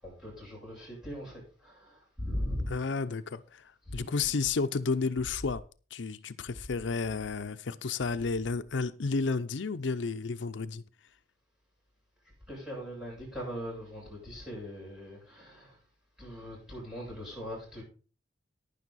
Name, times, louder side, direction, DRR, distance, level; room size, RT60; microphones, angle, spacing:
voice 1, 0.0-2.7 3.9-4.4 5.3-5.4 12.5-15.8 16.2-17.8, equal, 5° right, 7.9 m, -40 dB
voice 2, 2.7-5.6 5.9-10.8, left 4 dB, 80° left, 0.6 m, -32 dB
11.0 x 10.5 x 4.1 m
head